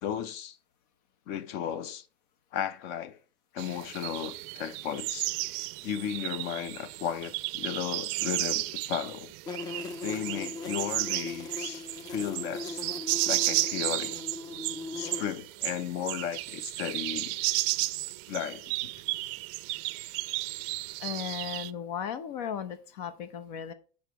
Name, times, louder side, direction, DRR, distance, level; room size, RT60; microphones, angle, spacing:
voice 1, 0.0-0.6 1.3-2.1 2.5-3.2 3.5-5.3 5.8-9.3 10.0-12.9 13.3-14.1 14.9-17.3 18.3-18.7, left 9 dB, 55° left, 0.8 m, -35 dB
sound 1, 3.6-21.7, right 22 dB, 55° right, 0.4 m, -33 dB
sound 2, 9.5-15.2, left 3 dB, 20° left, 0.4 m, -39 dB
voice 2, 21.0-23.7, left 8 dB, 75° left, 1.0 m, -36 dB
8.9 x 5.1 x 3.1 m
supercardioid pair, 140°, 21 cm